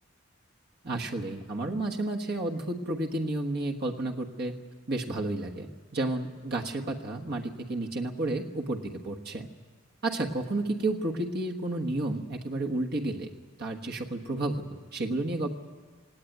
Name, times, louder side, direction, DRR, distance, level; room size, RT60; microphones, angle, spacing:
voice 1, 0.8-4.5 4.9-5.7 5.9-9.5 10.0-13.3 13.6-15.5, right 2 dB, 50° right, 0 dB, 1.4 m, -31 dB
18.5 x 18.5 x 9.4 m, 1.5 s
head